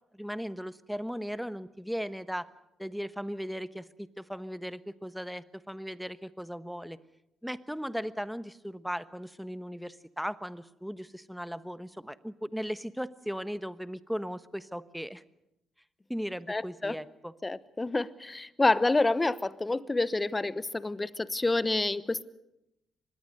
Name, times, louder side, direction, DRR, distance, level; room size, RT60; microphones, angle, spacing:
voice 1, 0.1-2.5 2.8-7.0 7.4-15.2 16.1-17.3, equal, ahead, 1.1 m, -37 dB
voice 2, 16.5-17.0 17.4-22.2, left 2 dB, 25° left, 1.0 m, -28 dB
25.0 x 20.5 x 6.6 m
hypercardioid pair, 45°, 0 cm